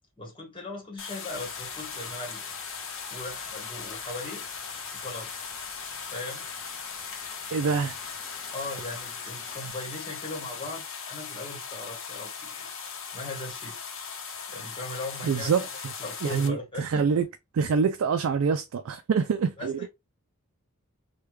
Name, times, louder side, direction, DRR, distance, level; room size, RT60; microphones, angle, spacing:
voice 1, 0.2-2.5 3.1-4.4 4.9-5.3 6.1-6.4 8.5-12.7 13.1-13.8 14.5-15.7 16.0-17.1 19.6-19.9, left 2 dB, 25° left, 1.2 m, -39 dB
Heavy Rain Loop, 1.0-16.5, left 6 dB, 60° left, 0.7 m, -38 dB
sound 1, 1.3-9.7, equal, ahead, 0.5 m, -50 dB
voice 2, 7.5-8.0 15.2-15.9 16.2-17.3 17.5-19.9, right 5 dB, 65° right, 0.3 m, -26 dB
3.3 x 2.2 x 3.1 m
head